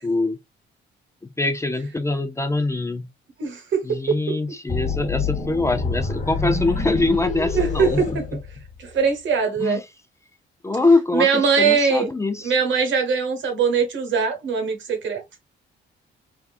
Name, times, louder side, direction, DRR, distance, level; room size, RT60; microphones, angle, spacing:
voice 1, 0.0-0.4 1.4-3.1 3.8-8.4 9.6-9.8 10.6-12.5, left 3 dB, 15° left, 0.4 m, -23 dB
voice 2, 3.4-4.2 7.5-8.2 8.8-9.8 11.1-12.1 12.4-15.2, right 6 dB, 70° right, 1.2 m, -21 dB
sound 1, 4.7-9.0, left 4 dB, 35° left, 1.1 m, -27 dB
3.5 x 2.4 x 2.4 m
cardioid pair, 90°, 20 cm